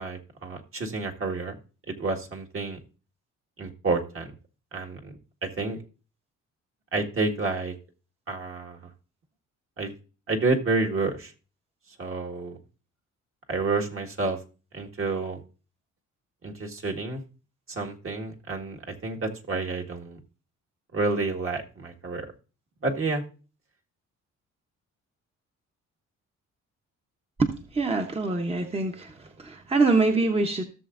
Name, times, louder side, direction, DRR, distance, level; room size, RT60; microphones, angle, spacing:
voice 1, 0.0-1.5 1.9-2.8 3.6-4.3 4.7-5.8 6.9-7.8 8.3-8.8 9.8-9.9 10.3-11.3 12.0-12.6 13.5-14.4 14.7-15.4 16.4-17.2 17.7-20.2 20.9-22.3 22.8-23.2, right 3 dB, 45° right, 1 dB, 1.8 m, -29 dB
voice 2, 27.4-30.6, right 3 dB, 20° right, 4 dB, 1.0 m, -25 dB
16.0 x 6.9 x 2.6 m, 0.35 s
cardioid pair, 90°, 30 cm